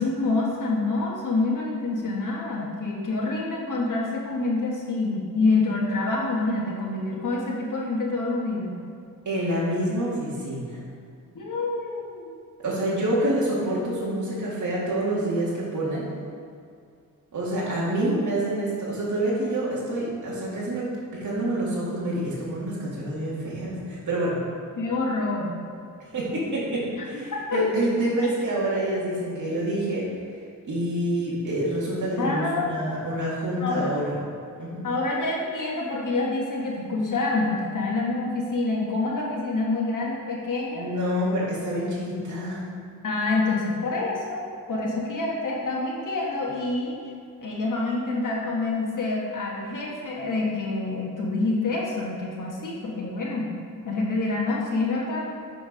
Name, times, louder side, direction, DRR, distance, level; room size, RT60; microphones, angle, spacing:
voice 1, 0.0-8.8 11.3-12.3 24.8-25.6 27.0-27.6 32.2-33.1 33.6-33.9 34.8-40.9 43.0-47.0 47.4-53.5 53.8-55.3, left 3 dB, 65° left, -4 dB, 1.4 m, -27 dB
voice 2, 9.3-10.8 12.6-16.0 17.3-20.9 21.2-24.4 26.1-30.1 30.6-34.1 34.6-34.9 40.7-42.6, right 1 dB, 60° right, -7 dB, 2.0 m, -27 dB
9.9 x 4.5 x 5.1 m, 2.4 s
wide cardioid pair, 120°, 34 cm